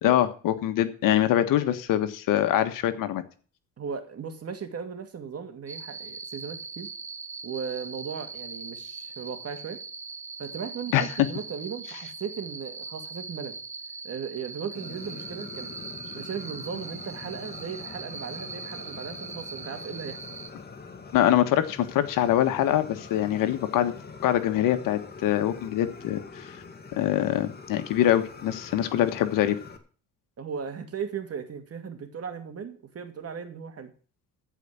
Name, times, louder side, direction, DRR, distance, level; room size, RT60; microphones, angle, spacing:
voice 1, 0.0-3.2 10.9-11.1 21.1-23.9 24.2-26.5 26.9-29.6, left 12 dB, 75° left, 10 dB, 1.5 m, -24 dB
voice 2, 3.8-6.9 7.4-9.8 10.4-13.6 14.0-15.7 16.1-20.2 30.4-33.9, right 6 dB, 45° right, 7 dB, 2.5 m, -37 dB
sound 1, 5.7-20.5, right 4 dB, 25° right, 1.2 m, -40 dB
Fire, 14.7-29.8, left 4 dB, 30° left, 2.2 m, -44 dB
14.5 x 5.0 x 8.5 m, 0.41 s
supercardioid pair, 80°, 33 cm